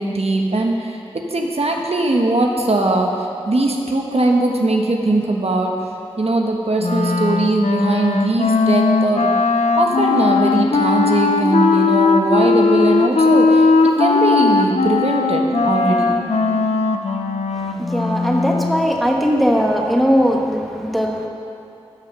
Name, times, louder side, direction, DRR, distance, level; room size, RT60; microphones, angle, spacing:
voice 1, 0.0-5.7 6.2-9.3 9.8-13.7 14.0-16.2, right 2 dB, 65° right, 1 dB, 1.1 m, -20 dB
Wind instrument woodwind instrument, 6.8-18.9, left 4 dB, 80° left, 0.7 m, -18 dB
voice 2, 17.6-21.3, equal, ahead, 0 dB, 1.3 m, -19 dB
13.0 x 6.5 x 6.0 m, 2.9 s
wide cardioid pair, 45°, 11 cm